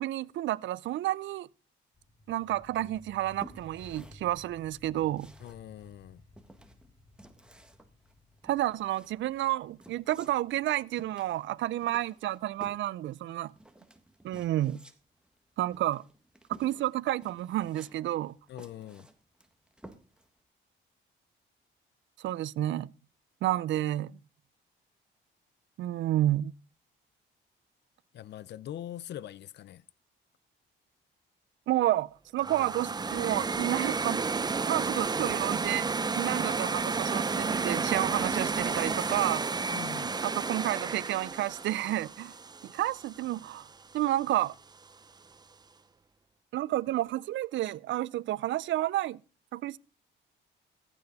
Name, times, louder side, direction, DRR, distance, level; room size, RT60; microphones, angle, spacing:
voice 1, 0.0-1.5 2.3-5.3 8.4-13.5 14.2-14.8 15.6-16.0 16.5-18.3 22.2-22.9 23.4-24.1 25.8-26.5 31.7-34.2 34.7-39.8 40.2-42.3 42.7-43.7 43.9-44.5 46.5-49.2 49.5-49.8, right 14 dB, 70° right, 0.5 m, -30 dB
sound 1, 1.9-13.0, left 2 dB, 20° left, 4.4 m, -57 dB
sound 2, 2.9-20.4, right 1 dB, 5° right, 1.6 m, -54 dB
voice 2, 5.4-6.2 18.5-19.1 28.1-29.8 39.7-40.2, left 11 dB, 60° left, 0.6 m, -42 dB
sound 3, 32.4-43.4, right 4 dB, 20° right, 0.5 m, -31 dB
15.0 x 8.9 x 4.1 m
cardioid pair, 90°, 20 cm